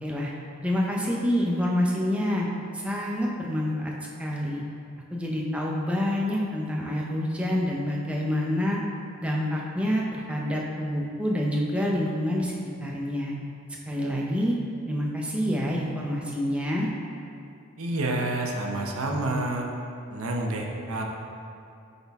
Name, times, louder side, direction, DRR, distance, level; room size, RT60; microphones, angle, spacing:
voice 1, 0.0-0.3 0.6-2.5 2.7-3.9 4.2-4.6 5.1-8.8 9.2-12.5 12.8-13.3 13.9-14.6 14.9-16.9, left 1 dB, 5° right, -3 dB, 0.6 m, -27 dB
voice 2, 17.8-19.7 20.1-21.0, right 2 dB, 75° right, 1 dB, 0.8 m, -28 dB
8.3 x 4.0 x 3.5 m, 2.5 s
head